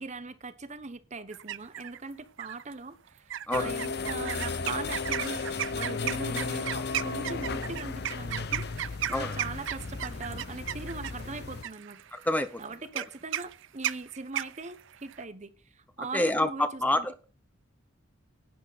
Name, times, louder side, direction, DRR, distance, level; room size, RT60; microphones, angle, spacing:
voice 1, 0.0-12.0 12.6-17.1, right 3 dB, 35° right, 13 dB, 1.0 m, -40 dB
sound 1, 1.3-2.0 2.4-2.7 3.3-15.2, right 11 dB, 60° right, 0.5 m, -35 dB
sound 2, 3.5-11.6, left 4 dB, 55° left, 0.8 m, -35 dB
voice 2, 12.1-12.6 12.9-13.0 16.0-17.1, left 1 dB, 10° left, 11 dB, 0.7 m, -28 dB
11.0 x 9.8 x 4.1 m, 0.32 s
head